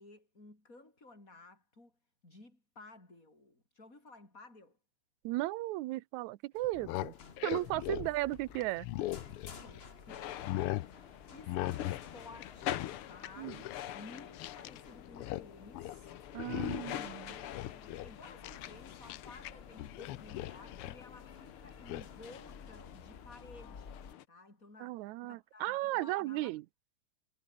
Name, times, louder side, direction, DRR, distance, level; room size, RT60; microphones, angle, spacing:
voice 1, 0.0-1.9 2.2-4.8 8.0-8.1 9.6-13.6 13.9-16.2 16.5-16.8 17.3-24.0 24.3-26.5, left 2 dB, 25° left, 7.7 m, -55 dB
voice 2, 5.2-7.1 7.4-8.9 13.4-13.6 16.3-17.4 24.8-26.6, right 18 dB, 80° right, 2.0 m, -35 dB
sound 1, 6.5-24.1, left 5 dB, 40° left, 0.8 m, -55 dB
sound 2, 6.6-9.9 10.2-10.9 11.5-12.1 12.3-14.8 15.0-15.5 15.7-16.0 16.4-17.0 17.4-19.5 19.8-21.0 21.9-22.1, left 16 dB, 85° left, 1.2 m, -39 dB
sound 3, 10.1-24.2, left 12 dB, 60° left, 1.5 m, -46 dB
omnidirectional pair, 3.4 m